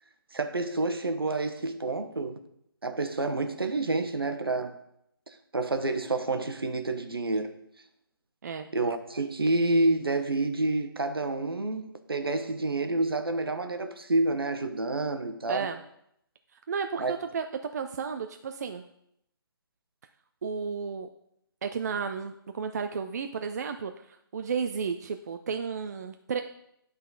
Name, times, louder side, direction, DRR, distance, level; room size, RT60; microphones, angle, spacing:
voice 1, 0.3-2.4 2.8-4.7 5.5-7.6 8.7-15.7 17.0-17.1, right 2 dB, 75° right, 1.0 m, -28 dB
voice 2, 15.5-15.8 16.7-17.5 17.7-18.8 20.4-21.1 21.6-26.4, right 6 dB, 45° right, 0.4 m, -33 dB
11.0 x 4.0 x 3.9 m
figure-of-eight pair, 140°, 12 cm